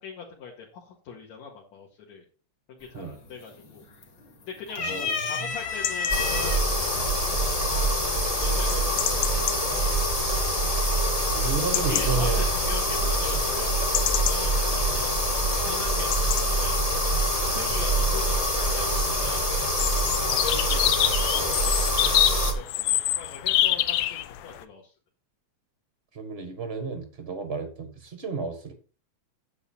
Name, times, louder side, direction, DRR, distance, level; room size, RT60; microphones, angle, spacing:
voice 1, 0.0-2.2 2.7-3.9 4.5-7.9 8.3-9.9 11.3-15.1 15.6-16.8 17.5-19.5 20.2-21.7 22.0-24.9, left 5 dB, 70° left, -2 dB, 3.0 m, -41 dB
sound 1, 2.8-3.2 3.6-4.3 4.7-6.6 7.5-7.6 8.8-9.3, left 5 dB, 45° left, 2.0 m, -30 dB
voice 2, 4.8-5.5 11.3-12.4 26.1-28.7, right 5 dB, 50° right, 7 dB, 0.7 m, -32 dB
sound 2, 5.5-24.6, left 13 dB, 90° left, 1.3 m, -30 dB
sound 3, 6.1-22.5, right 1 dB, 30° left, 0.7 m, -25 dB
9.5 x 7.3 x 4.3 m, 0.36 s
omnidirectional pair, 3.4 m